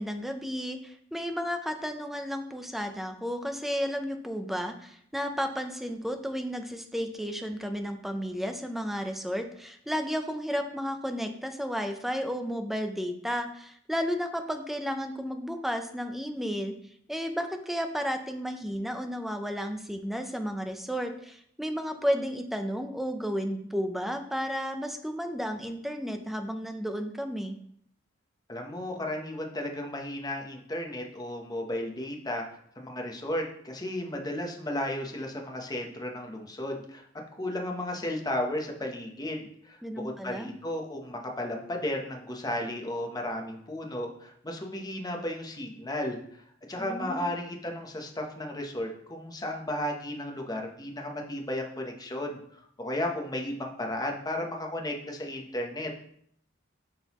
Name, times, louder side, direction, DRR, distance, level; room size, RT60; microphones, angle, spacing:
voice 1, 0.0-16.7 17.1-27.6 39.8-40.5 46.8-47.3, equal, ahead, 6 dB, 0.6 m, -33 dB
voice 2, 28.5-32.4 32.8-37.1 37.4-46.2 46.7-55.9, left 1 dB, 20° left, 1 dB, 1.0 m, -34 dB
11.0 x 3.9 x 3.0 m, 0.67 s
head